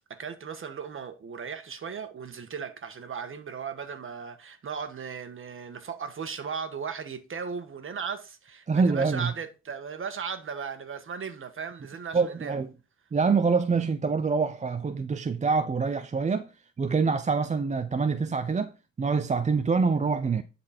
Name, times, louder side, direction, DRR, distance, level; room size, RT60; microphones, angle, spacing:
voice 1, 0.1-12.6, right 6 dB, 45° right, 1.5 m, -37 dB
voice 2, 8.7-9.3 12.1-12.7 13.1-16.5 16.8-18.7 19.0-20.4, right 4 dB, 25° right, 0.6 m, -25 dB
10.5 x 4.3 x 4.4 m
cardioid pair, 90°, 30 cm